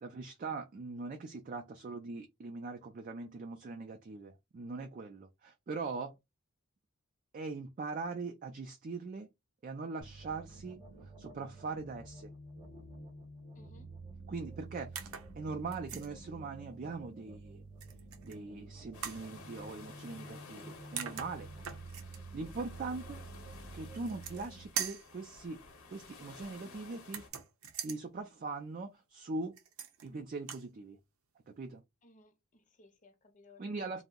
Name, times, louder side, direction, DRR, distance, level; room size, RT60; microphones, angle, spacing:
voice 1, 0.0-6.1 7.3-9.3 9.6-12.3 14.3-15.1 15.4-17.6 18.2-21.5 22.3-23.2 23.7-25.6 25.9-27.2 27.8-29.5 30.0-31.0 31.5-31.8 33.6-34.0, right 3 dB, 40° right, 0.3 m, -41 dB
sound 1, 10.0-24.7, right 2 dB, 20° right, 0.8 m, -50 dB
voice 2, 13.5-13.9 32.0-33.8, left 2 dB, 35° left, 0.6 m, -61 dB
sound 2, 14.9-15.3 15.7-16.1 17.8-18.4 19.0-19.2 20.6-20.7 21.0-22.2 23.9-24.5 24.8-25.1 27.0-28.0 29.6-30.1 30.4-30.7, right 8 dB, 90° right, 0.6 m, -41 dB
sound 3, 18.9-27.3, left 4 dB, 80° left, 0.8 m, -54 dB
2.6 x 2.0 x 3.6 m
head